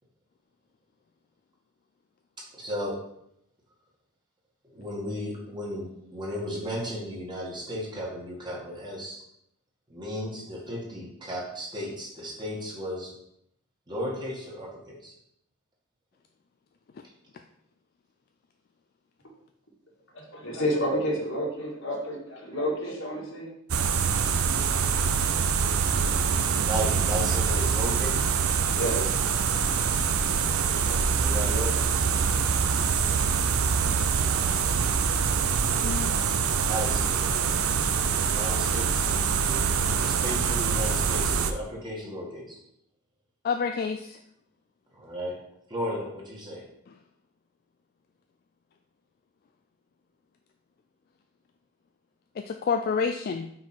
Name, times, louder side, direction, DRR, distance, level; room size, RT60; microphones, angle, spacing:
voice 1, 2.6-3.0 4.7-9.2 9.9-13.1 13.9-15.1 26.6-28.2 30.6-31.9 36.7-37.5 38.2-39.7 40.0-42.6 44.9-45.4 45.7-46.6, equal, 20° right, -4 dB, 1.8 m, -35 dB
voice 2, 20.1-23.5 28.7-29.2, equal, 60° left, -2 dB, 1.7 m, -30 dB
sound 1, 23.7-41.5, right 6 dB, 70° right, 0.5 m, -25 dB
voice 3, 35.8-36.1 43.4-44.2 52.4-53.5, left 5 dB, 45° left, 6 dB, 0.3 m, -28 dB
5.7 x 4.7 x 4.4 m, 0.76 s
head